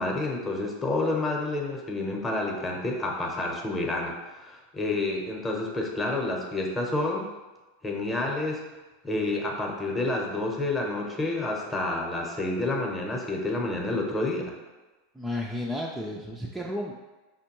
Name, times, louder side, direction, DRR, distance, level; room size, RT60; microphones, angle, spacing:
voice 1, 0.0-7.3 7.8-8.6 9.0-14.5, left 2 dB, 15° left, -1 dB, 0.8 m, -29 dB
voice 2, 15.2-16.9, left 1 dB, 10° right, -2 dB, 0.4 m, -32 dB
5.1 x 2.2 x 3.0 m, 1.2 s
hypercardioid pair, 100°, 0 cm